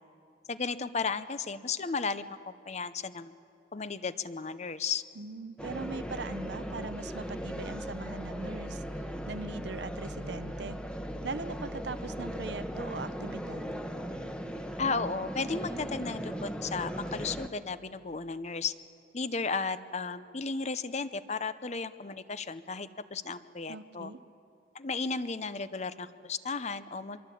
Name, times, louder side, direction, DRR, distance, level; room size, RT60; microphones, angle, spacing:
voice 1, 0.5-3.3 3.7-5.0 14.8-18.7 19.1-24.1 24.7-27.2, left 4 dB, 35° left, 13 dB, 0.7 m, -34 dB
voice 2, 5.2-8.8 9.3-10.8 11.2-13.7 23.7-24.2, right 3 dB, 65° right, 13 dB, 0.8 m, -40 dB
sound 1, 5.6-17.5, equal, 5° left, 1.0 m, -38 dB
24.5 x 23.0 x 8.5 m, 2.6 s
head